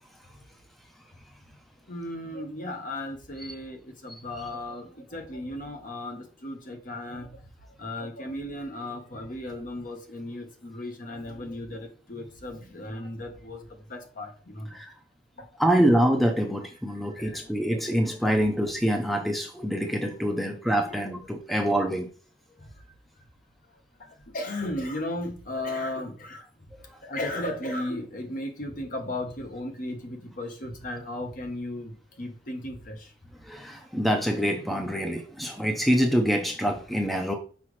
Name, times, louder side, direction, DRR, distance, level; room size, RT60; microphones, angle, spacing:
voice 1, 1.9-7.4 7.8-14.7 15.4-15.5 16.9-18.5 20.8-21.0 24.3-26.4 27.0-33.1, left 1 dB, 50° left, 1.2 m, -36 dB
voice 2, 15.6-22.1 33.4-37.3, equal, ahead, 0.7 m, -25 dB
5.9 x 4.9 x 3.2 m
head